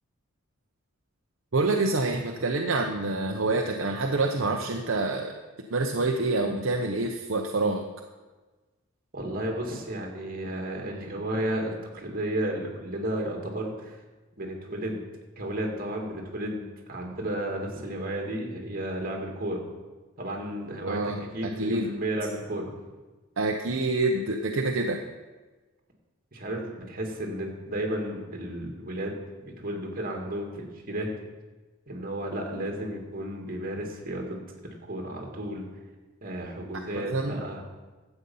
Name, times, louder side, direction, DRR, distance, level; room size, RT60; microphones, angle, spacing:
voice 1, 1.5-5.3 5.7-7.8 20.9-21.9 23.4-25.0 36.9-37.4, right 2 dB, 65° right, 2 dB, 0.8 m, -27 dB
voice 2, 9.1-14.0 14.4-15.1 15.4-19.6 20.2-22.7 26.3-31.1 31.9-34.4 34.6-35.7 36.2-37.6, right 1 dB, 45° right, 1 dB, 2.2 m, -33 dB
12.5 x 8.1 x 5.6 m, 1.2 s
head